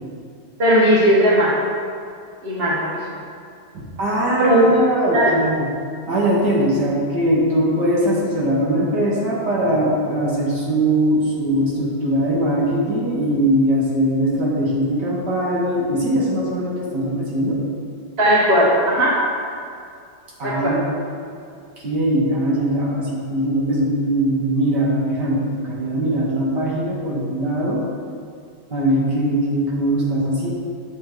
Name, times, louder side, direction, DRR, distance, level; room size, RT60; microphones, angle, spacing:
voice 1, 0.6-1.5 2.4-3.2 4.3-4.7 5.1-5.4 18.2-19.2 20.4-20.8, equal, 30° right, -5 dB, 1.5 m, -17 dB
voice 2, 3.7-5.7 6.1-17.6 20.4-20.8 21.6-27.8 28.7-30.5, right 1 dB, 60° right, -4 dB, 2.1 m, -21 dB
8.9 x 6.4 x 4.7 m, 2.3 s
omnidirectional pair, 2.2 m